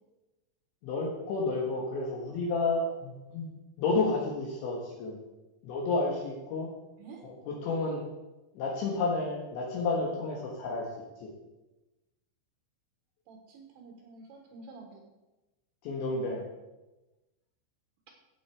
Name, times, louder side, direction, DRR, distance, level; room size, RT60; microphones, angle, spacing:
voice 1, 0.8-3.5 3.8-5.2 5.6-6.7 7.2-8.0 8.6-10.9 11.2-11.3 15.8-16.5, left 3 dB, 70° left, -2 dB, 3.6 m, -31 dB
voice 2, 13.3-15.0, right 3 dB, 70° right, 1 dB, 3.4 m, -49 dB
15.5 x 7.4 x 4.7 m, 1.1 s
omnidirectional pair, 5.9 m